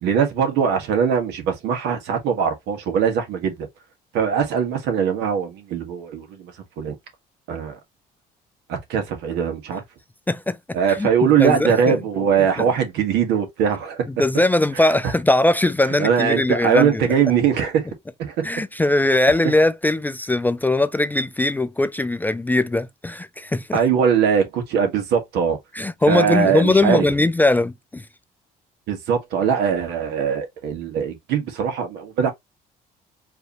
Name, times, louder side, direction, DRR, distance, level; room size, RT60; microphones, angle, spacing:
voice 1, 0.0-3.7 4.1-7.0 7.5-7.8 8.7-9.8 10.7-14.0 14.7-14.9 16.0-17.9 18.2-18.3 23.7-25.6 26.1-27.1 28.9-32.3, right 7 dB, 85° right, 1.4 m, -21 dB
voice 2, 10.3-10.6 11.0-12.0 12.6-12.7 14.2-17.1 18.4-23.8 25.7-28.0, left 2 dB, 10° left, 0.3 m, -20 dB
4.8 x 2.8 x 2.9 m
cardioid pair, 110°, 17 cm